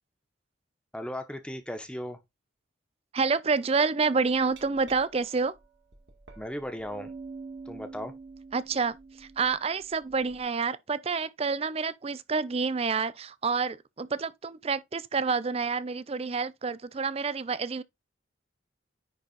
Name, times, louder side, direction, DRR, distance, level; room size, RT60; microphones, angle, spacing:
voice 1, 0.9-2.2 6.4-7.1 7.6-8.1, equal, 5° left, 1.1 m, -36 dB
voice 2, 3.1-5.5 8.5-17.8, right 4 dB, 30° right, 0.4 m, -28 dB
Glass, 4.3-10.4, right 4 dB, 60° right, 2.0 m, -47 dB
10.0 x 3.9 x 4.0 m
head